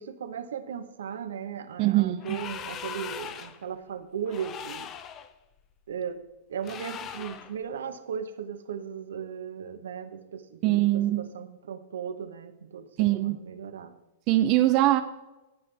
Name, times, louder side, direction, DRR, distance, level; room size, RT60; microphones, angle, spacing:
voice 1, 0.0-4.9 5.9-6.2 6.5-14.0, right 7 dB, 85° right, 10 dB, 1.0 m, -37 dB
voice 2, 1.8-2.4 10.6-11.3 13.0-13.4 14.3-15.0, right 15 dB, 40° right, 9 dB, 0.5 m, -22 dB
sound 1, 2.2-3.6 4.3-5.3 6.6-7.5, left 8 dB, 30° left, 0.7 m, -39 dB
18.0 x 5.9 x 3.4 m, 1.0 s
hypercardioid pair, 140°, 0 cm